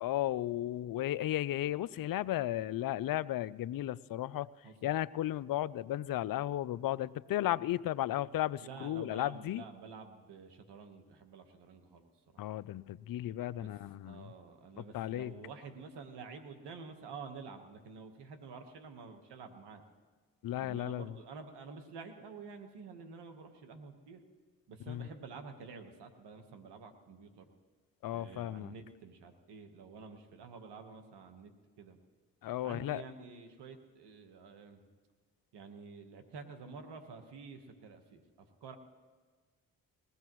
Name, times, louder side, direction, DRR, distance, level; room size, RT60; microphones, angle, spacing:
voice 1, 0.0-4.5 4.8-9.6 12.4-14.3 14.9-15.3 20.4-21.1 24.9-25.1 28.0-28.7 32.4-33.0, left 13 dB, 55° left, 17 dB, 0.5 m, -34 dB
voice 2, 4.6-5.0 8.6-12.4 13.6-13.7 14.0-19.8 20.6-24.2 24.7-27.5 28.1-31.5 31.8-32.0 32.6-34.8 35.5-38.8, right 4 dB, 80° right, 6 dB, 1.4 m, -49 dB
20.5 x 16.5 x 3.1 m, 1.4 s
supercardioid pair, 45°, 40 cm